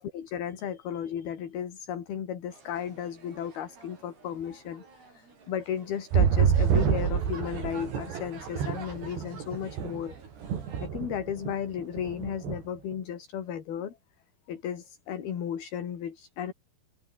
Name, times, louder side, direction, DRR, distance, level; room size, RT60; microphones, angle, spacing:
voice 1, 0.0-10.2 10.8-14.0 14.5-16.5, left 9 dB, 65° left, 4.7 m, -34 dB
sound 1, 2.5-10.9, right 4 dB, 70° right, 9.6 m, -49 dB
sound 2, 6.1-10.1 10.4-11.5 11.8-12.6 12.9-13.0, right 8 dB, 85° right, 5.8 m, -27 dB
omnidirectional pair, 4.8 m